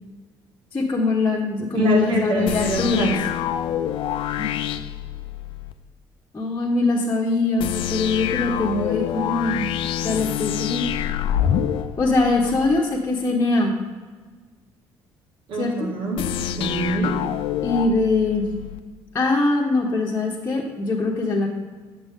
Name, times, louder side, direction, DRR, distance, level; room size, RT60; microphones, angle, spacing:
voice 1, 0.7-3.2 4.4-4.6 6.3-9.7 10.0-10.8 12.0-13.7 15.5-15.9 17.6-18.5 19.1-21.5, left 3 dB, 25° left, -4 dB, 1.4 m, -22 dB
voice 2, 1.7-3.2 15.5-17.2, right 2 dB, 70° right, -1 dB, 2.4 m, -25 dB
sound 1, 2.5-5.7 7.6-12.8 16.2-18.8, left 10 dB, 75° left, 0.5 m, -27 dB
10.5 x 7.5 x 3.8 m, 1.4 s
cardioid pair, 95°, 9 cm